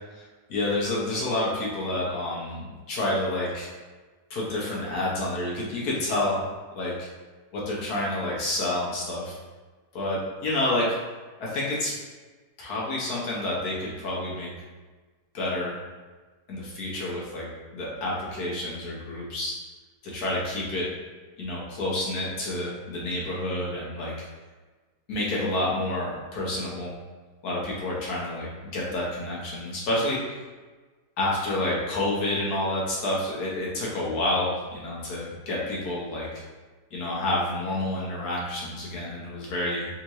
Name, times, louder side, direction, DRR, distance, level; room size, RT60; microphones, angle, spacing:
voice 1, 0.5-3.7 4.3-6.5 6.8-7.1 7.5-9.4 9.9-11.0 11.4-11.9 12.6-14.5 15.3-15.8 16.5-17.5 17.7-19.5 20.0-20.9 21.4-24.1 25.1-26.9 27.4-28.5 28.7-30.2 31.2-36.3 36.9-39.9, left 1 dB, 70° left, -5 dB, 1.3 m, -29 dB
3.6 x 2.8 x 2.9 m, 1.3 s
omnidirectional pair, 1.7 m